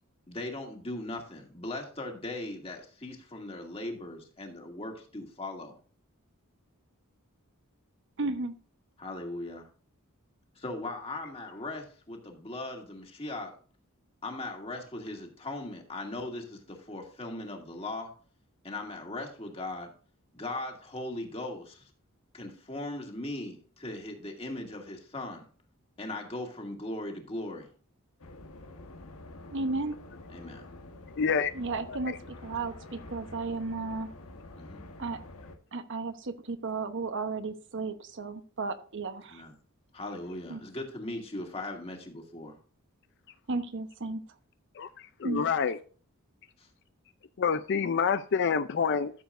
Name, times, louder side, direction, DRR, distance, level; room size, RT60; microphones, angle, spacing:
voice 1, 0.3-5.8 9.0-9.7 10.6-13.5 14.2-18.1 18.6-19.9 20.3-21.9 22.3-25.4 26.0-27.7 30.3-30.6 34.6-34.8 39.3-39.5 39.9-42.6 45.4-45.6 46.6-46.7, left 2 dB, 25° left, 2 dB, 2.2 m, -39 dB
voice 2, 8.2-8.5 29.5-30.0 31.5-32.1 32.4-34.1 35.0-35.2 35.7-39.4 40.5-40.6 43.5-44.2 45.2-45.4, right 3 dB, 60° right, 9 dB, 1.0 m, -34 dB
sound 1, 28.2-35.6, left 2 dB, 80° left, 1.3 m, -47 dB
voice 3, 31.2-31.5 31.9-32.2 44.8-45.8 47.4-49.1, left 6 dB, 55° left, 12 dB, 0.5 m, -28 dB
13.0 x 7.0 x 2.5 m, 0.41 s
head